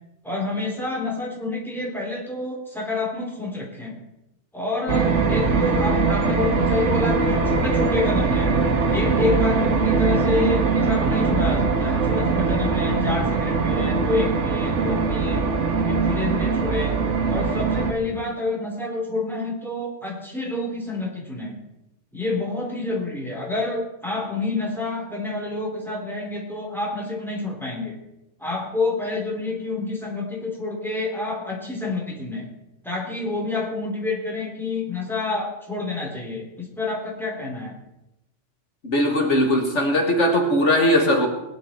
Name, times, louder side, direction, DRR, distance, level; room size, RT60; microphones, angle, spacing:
voice 1, 0.2-4.0 4.5-8.5 8.9-15.5 15.9-16.9 17.3-21.5 22.1-28.0 28.4-32.5 32.8-37.8, left 3 dB, ahead, -1 dB, 3.3 m, -28 dB
sound 1, 4.9-17.9, right 4 dB, 70° right, 1.6 m, -21 dB
voice 2, 38.8-41.3, left 1 dB, 70° left, 3 dB, 2.1 m, -19 dB
20.0 x 10.5 x 4.4 m, 0.91 s
omnidirectional pair, 1.3 m